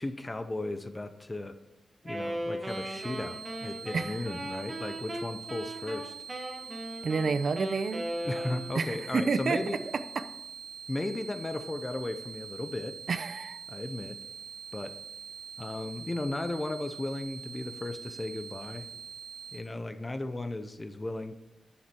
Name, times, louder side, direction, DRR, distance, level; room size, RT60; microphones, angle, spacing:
voice 1, 0.0-1.5 2.0-6.1 8.2-9.8 10.9-12.9 13.7-14.2 14.7-15.0 15.6-18.9 19.5-21.3, left 2 dB, 20° left, 10 dB, 0.7 m, -35 dB
Wind instrument woodwind instrument, 2.0-9.0, right 1 dB, 25° right, 1.4 m, -38 dB
sound 1, 2.7-19.6, right 6 dB, 90° right, 3.4 m, -45 dB
voice 2, 7.0-8.1 8.8-9.6 13.1-13.6, right 4 dB, 55° right, 12 dB, 0.5 m, -29 dB
11.0 x 7.2 x 4.4 m, 0.94 s
wide cardioid pair, 135°, 0 cm